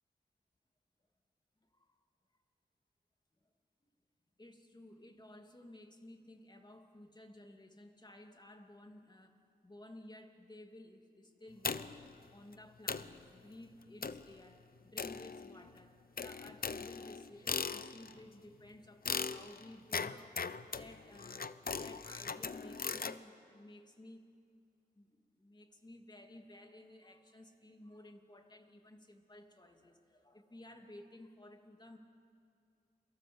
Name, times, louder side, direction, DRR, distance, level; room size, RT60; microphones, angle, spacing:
voice 1, 1.6-2.0 3.4-3.5 3.8-3.9 4.4-12.0 12.3-24.3 24.9-32.0, left 1 dB, 25° left, 4 dB, 2.7 m, -55 dB
sound 1, 11.6-12.1 12.5-12.6 12.9-13.2 14.0-14.3 15.0-15.7 16.2-18.2 19.1-23.2, left 5 dB, 55° left, 0.8 m, -39 dB
29.0 x 23.0 x 7.9 m, 2.4 s
wide cardioid pair, 65°, 18 cm